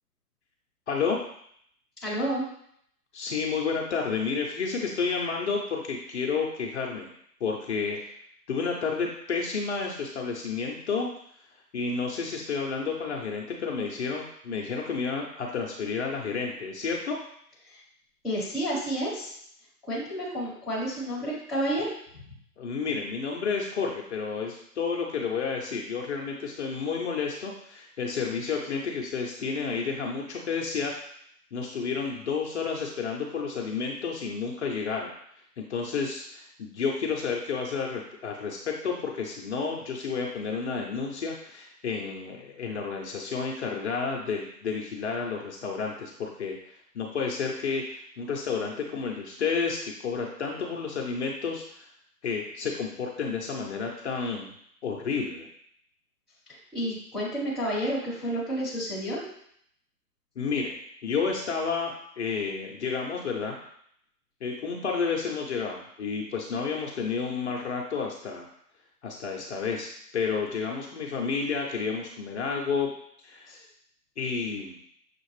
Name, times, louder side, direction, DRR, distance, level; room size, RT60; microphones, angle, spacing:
voice 1, 0.9-1.2 3.1-7.1 7.4-8.0 8.5-11.1 11.7-17.2 22.6-31.0 31.5-35.1 35.6-51.9 52.2-54.5 54.8-55.5 60.4-60.7 61.0-63.6 64.4-68.5 69.0-69.9 70.1-72.9 73.2-73.6 74.2-74.8, left 5 dB, 45° left, 0 dB, 0.6 m, -31 dB
voice 2, 2.0-2.4 17.6-17.8 18.2-19.4 19.9-21.9 56.7-59.2 73.5-73.6, equal, ahead, -9 dB, 0.9 m, -30 dB
6.4 x 2.4 x 3.2 m, 0.68 s
hypercardioid pair, 145°, 47 cm